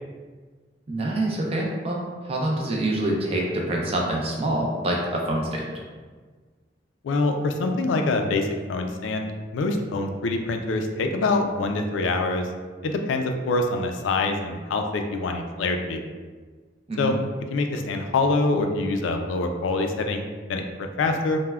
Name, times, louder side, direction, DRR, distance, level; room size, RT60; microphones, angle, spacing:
voice 1, 0.9-2.0 2.2-5.6 16.9-17.1, right 1 dB, 30° right, -2 dB, 0.4 m, -26 dB
voice 2, 7.0-12.4 12.8-16.0 17.0-17.2 17.5-21.4, left 3 dB, 85° left, 5 dB, 0.3 m, -25 dB
3.3 x 2.1 x 2.3 m, 1.5 s
head